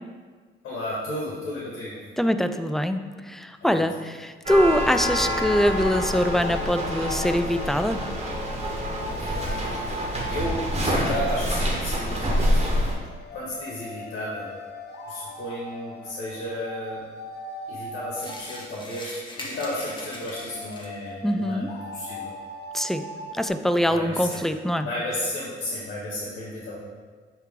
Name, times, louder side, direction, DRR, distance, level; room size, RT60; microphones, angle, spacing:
voice 1, 0.6-2.0 3.6-3.8 9.1-12.9 13.3-14.5 15.0-17.0 17.7-22.4 23.9-26.8, left 1 dB, 75° left, -6 dB, 1.6 m, -33 dB
voice 2, 2.2-8.0 21.2-21.7 22.7-23.1 23.4-24.9, equal, ahead, 8 dB, 0.3 m, -23 dB
sound 1, 4.5-12.9, equal, 30° right, 1.4 m, -27 dB
sound 2, 5.3-23.5, left 1 dB, 55° left, 1.0 m, -39 dB
sound 3, 18.1-21.1, left 1 dB, 25° left, 1.1 m, -40 dB
8.9 x 3.1 x 3.7 m, 1.5 s
cardioid pair, 90°, 20 cm